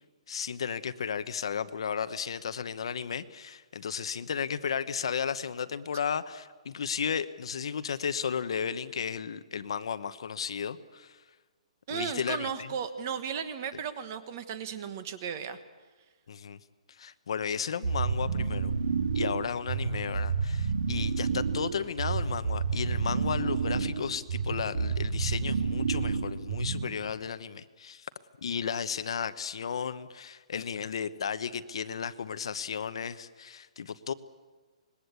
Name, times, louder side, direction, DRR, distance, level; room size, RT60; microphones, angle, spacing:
voice 1, 0.3-11.2 11.9-12.7 16.3-16.6 17.0-18.7 19.1-28.1 28.4-34.1, left 7 dB, 50° left, 12 dB, 1.0 m, -34 dB
voice 2, 11.9-15.6, right 7 dB, 25° right, 11 dB, 1.3 m, -35 dB
sound 1, 17.8-27.1, right 5 dB, 75° right, 2.7 m, -30 dB
25.5 x 21.0 x 8.3 m, 1.3 s
hypercardioid pair, 180°, 4 cm